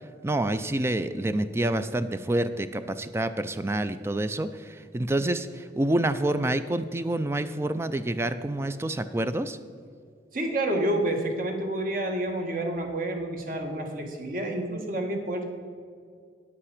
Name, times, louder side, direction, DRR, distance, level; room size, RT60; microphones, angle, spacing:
voice 1, 0.2-9.6, right 1 dB, 15° right, 11 dB, 0.3 m, -28 dB
voice 2, 10.3-15.5, right 1 dB, 50° right, 3 dB, 1.4 m, -29 dB
9.8 x 8.5 x 5.0 m, 2.2 s
head